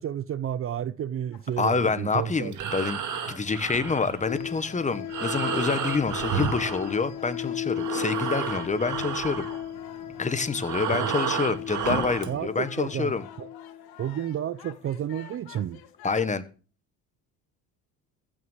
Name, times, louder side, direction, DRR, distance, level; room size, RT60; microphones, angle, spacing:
voice 1, 0.0-2.7 10.9-11.1 12.3-13.5 14.0-15.8, right 10 dB, 40° right, 0.5 m, -31 dB
sound 1, 1.3-16.5, left 10 dB, 85° left, 2.3 m, -51 dB
voice 2, 1.6-3.0 3.3-9.5 10.2-13.2 16.0-16.4, left 4 dB, 20° left, 1.3 m, -27 dB
Breathing, 2.4-7.4 7.7-12.4, right 7 dB, 55° right, 2.2 m, -32 dB
sound 2, 4.3-14.7, left 11 dB, 60° left, 1.7 m, -37 dB
15.5 x 6.4 x 7.3 m
cardioid pair, 130°, 36 cm